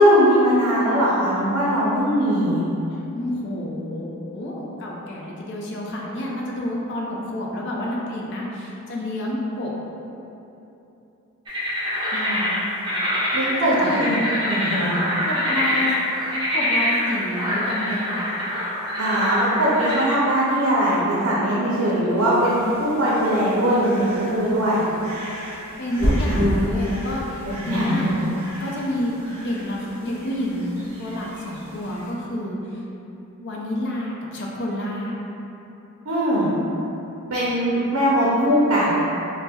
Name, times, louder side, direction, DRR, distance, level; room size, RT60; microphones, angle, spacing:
voice 1, 0.0-2.6 13.3-14.2 14.5-14.9 19.0-24.9 27.7-28.2 36.0-36.5 37.3-38.9, equal, 80° right, -8 dB, 0.5 m, -20 dB
voice 2, 3.1-9.7 12.1-12.5 13.6-14.1 15.2-15.9 16.5-18.3 25.8-28.0 28.6-30.7 31.0-32.8 33.4-35.2, left 1 dB, 55° left, -3 dB, 0.4 m, -29 dB
sound 1, 11.5-20.2, left 1 dB, 20° right, 0.5 m, -25 dB
sound 2, 22.1-32.1, equal, 50° right, 1.0 m, -30 dB
4.1 x 2.1 x 2.2 m, 2.9 s
head